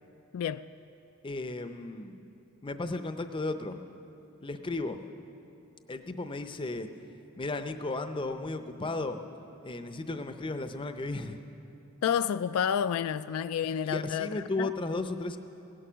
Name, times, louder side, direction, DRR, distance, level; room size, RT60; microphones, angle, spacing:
voice 1, 0.3-0.6 12.0-14.7, left 8 dB, 70° left, 13 dB, 0.3 m, -30 dB
voice 2, 1.2-2.2 2.6-3.8 4.4-5.0 5.9-6.9 7.4-9.2 9.6-11.4 13.8-15.4, left 2 dB, 20° left, 8 dB, 0.6 m, -34 dB
17.0 x 11.5 x 6.2 m, 2.8 s
head